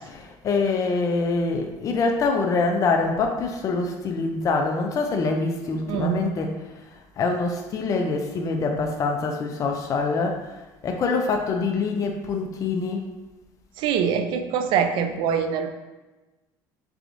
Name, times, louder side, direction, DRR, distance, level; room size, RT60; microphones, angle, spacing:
voice 1, 0.1-6.6 7.2-10.5 10.8-13.1, left 4 dB, 40° left, 3 dB, 0.4 m, -25 dB
voice 2, 5.9-6.3 13.8-15.7, right 7 dB, 65° right, 8 dB, 0.4 m, -24 dB
4.4 x 3.4 x 2.5 m, 1.1 s
supercardioid pair, 105°, 9 cm